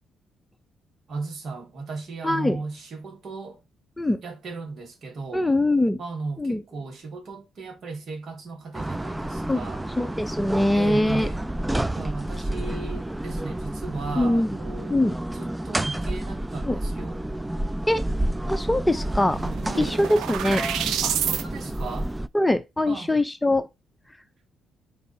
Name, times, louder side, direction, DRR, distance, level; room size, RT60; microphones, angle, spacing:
voice 1, 1.1-3.6 4.2-5.5 6.0-9.8 10.7-11.4 11.9-15.0 15.3-17.2 19.7-20.0 21.0-22.1 22.9-23.1, right 3 dB, 55° right, 2.0 m, -36 dB
voice 2, 2.2-2.6 4.0-4.2 5.3-6.0 6.4-6.6 9.5-9.6 10.0-11.3 14.2-14.6 14.9-15.2 16.6-16.8 17.9-18.0 18.5-19.4 19.8-20.6 22.3-23.7, left 1 dB, 10° left, 0.7 m, -22 dB
sound 1, 8.7-22.3, right 1 dB, 10° right, 0.4 m, -30 dB
sound 2, 18.6-18.7 18.9-21.4, right 10 dB, 85° right, 0.6 m, -29 dB
4.7 x 4.0 x 5.6 m
cardioid pair, 90°, 0 cm